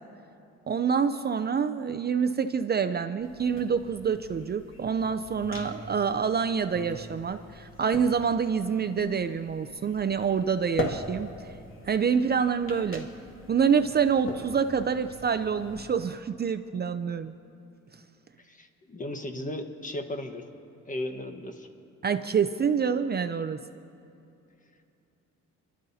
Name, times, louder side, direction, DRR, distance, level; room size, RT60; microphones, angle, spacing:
voice 1, 0.7-11.3 11.9-13.1 13.5-17.3 22.0-23.6, right 6 dB, 35° right, 9 dB, 0.5 m, -27 dB
sound 1, 3.2-15.8, left 2 dB, 45° left, 2.5 m, -42 dB
voice 2, 18.4-20.5 20.9-21.7, left 1 dB, 25° left, 6 dB, 1.3 m, -36 dB
29.5 x 12.5 x 2.8 m, 2.7 s
cardioid pair, 90°, 30 cm